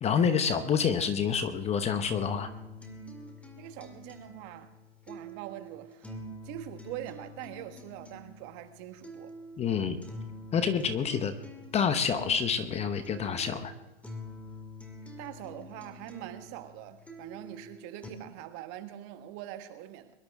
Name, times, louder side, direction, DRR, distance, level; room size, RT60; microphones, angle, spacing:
voice 1, 0.0-2.5 9.6-10.0 10.5-11.3 11.7-13.7, left 7 dB, 20° left, 0.9 m, -28 dB
sound 1, 2.1-18.1, equal, 5° left, 2.0 m, -46 dB
voice 2, 3.6-4.7 5.1-6.1 6.4-9.3 15.2-20.1, right 13 dB, 40° right, 1.5 m, -43 dB
23.0 x 12.0 x 3.6 m
hypercardioid pair, 130°, 33 cm